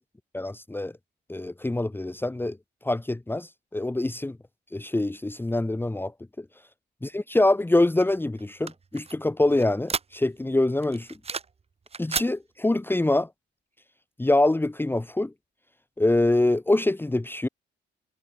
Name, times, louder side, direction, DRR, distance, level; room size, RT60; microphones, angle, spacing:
voice 1, 0.3-0.9 1.3-2.6 2.8-4.4 4.7-6.1 6.4-6.5 7.0-11.1 12.0-13.3 14.2-15.3 16.0-17.5, left 2 dB, 10° left, 1.3 m, -24 dB
sound 1, 8.0-10.5 10.8-11.6 11.9-12.3, right 5 dB, 30° right, 1.2 m, -33 dB
cardioid pair, 90°, 20 cm